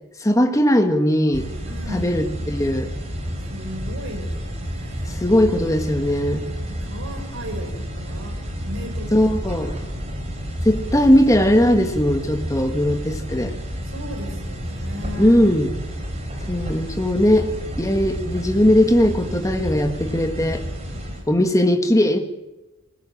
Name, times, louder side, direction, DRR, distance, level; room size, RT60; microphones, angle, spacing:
voice 1, 0.2-1.5 1.9-2.9 5.0-6.5 9.1-9.7 10.6-13.5 15.2-15.7 16.5-17.5 17.8-20.6 21.3-22.2, left 1 dB, 15° left, 5 dB, 1.7 m, -19 dB
sound 1, 1.3-21.2, equal, 35° right, 4.4 m, -30 dB
voice 2, 1.7-2.3 3.4-5.3 6.7-9.3 13.9-15.4, equal, 70° right, 6 dB, 4.6 m, -36 dB
20.5 x 18.0 x 7.4 m, 1.0 s
head